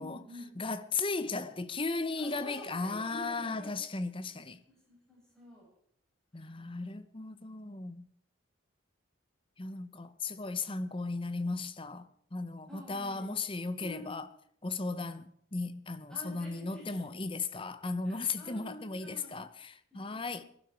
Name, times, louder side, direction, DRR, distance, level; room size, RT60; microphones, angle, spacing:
voice 1, 0.0-0.5 2.2-3.7 4.7-5.7 6.3-6.8 12.7-13.4 13.8-14.2 16.1-17.2 18.0-19.4 19.9-20.5, equal, 5° left, 7.5 m, -49 dB
voice 2, 0.6-4.6 6.3-8.0 9.6-14.3 14.6-20.4, left 3 dB, 25° left, 0.8 m, -36 dB
21.0 x 12.0 x 4.5 m
head